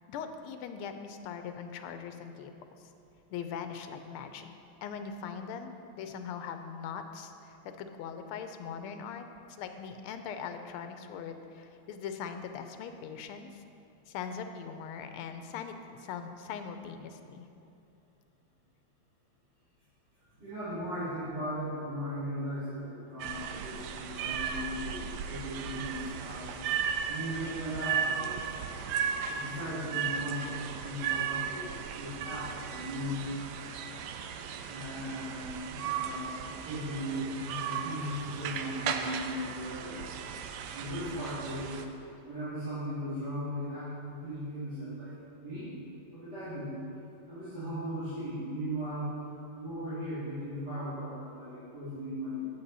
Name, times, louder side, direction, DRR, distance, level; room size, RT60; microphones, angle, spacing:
voice 1, 0.1-2.5 3.3-4.5 4.8-9.3 9.6-13.6 14.1-17.5, left 7 dB, 85° left, 7 dB, 1.5 m, -41 dB
voice 2, 20.4-26.5 27.1-28.7 29.3-31.7 32.0-33.3 34.7-40.0 40.7-41.8 42.2-45.1 45.4-45.7 46.1-46.8 47.3-49.1 49.5-52.5, equal, 50° right, -15 dB, 3.1 m, -37 dB
sound 1, 23.2-41.8, right 7 dB, 90° right, 0.9 m, -36 dB
8.5 x 8.4 x 4.0 m, 2.6 s
omnidirectional pair, 2.3 m